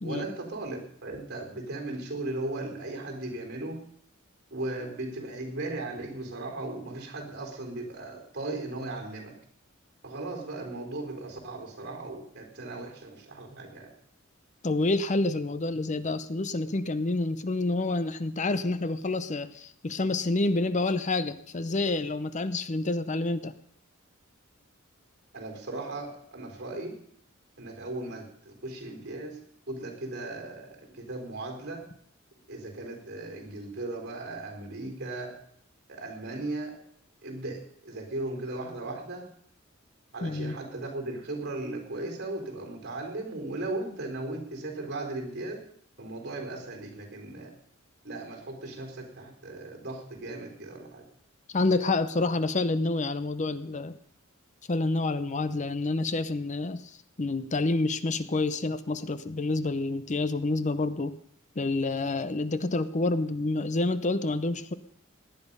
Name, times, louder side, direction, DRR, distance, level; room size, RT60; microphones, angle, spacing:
voice 1, 0.0-3.8 4.5-9.3 10.0-13.9 25.3-27.0 27.6-29.4 29.7-31.8 32.5-35.3 35.9-36.7 37.2-39.3 40.1-45.6 46.0-47.5 48.0-51.0, right 2 dB, 55° right, 3 dB, 3.9 m, -37 dB
voice 2, 14.6-23.5 40.2-40.6 51.5-54.0 54.7-61.2 61.6-64.7, left 2 dB, 35° left, 13 dB, 0.7 m, -28 dB
18.0 x 10.5 x 5.4 m, 0.65 s
head